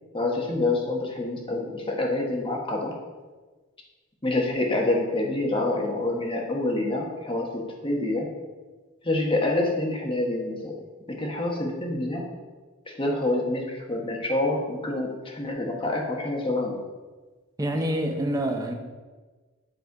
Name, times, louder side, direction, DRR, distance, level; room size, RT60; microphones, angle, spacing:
voice 1, 0.1-2.9 4.2-8.3 9.0-10.8 11.1-12.3 12.9-16.8, left 2 dB, 25° left, 0 dB, 1.3 m, -27 dB
voice 2, 17.6-18.7, right 1 dB, 20° right, 3 dB, 0.8 m, -26 dB
8.0 x 4.4 x 4.7 m, 1.3 s
head